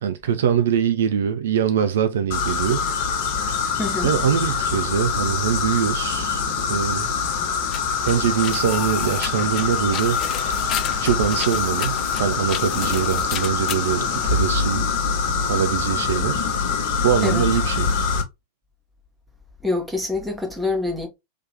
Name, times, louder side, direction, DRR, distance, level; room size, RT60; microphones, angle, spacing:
voice 1, 0.0-2.9 4.0-6.4 6.7-7.2 8.0-10.2 11.0-14.9 15.5-16.5 17.0-17.9, right 8 dB, 60° right, 0.4 m, -23 dB
sound 1, 2.3-18.2, left 5 dB, 50° left, 0.8 m, -24 dB
voice 2, 3.8-4.1 17.2-17.5 19.6-21.1, left 3 dB, 5° right, 1.0 m, -25 dB
sound 2, 6.9-14.8, left 10 dB, 35° left, 0.4 m, -34 dB
3.3 x 2.9 x 2.8 m
figure-of-eight pair, 90°, 0 cm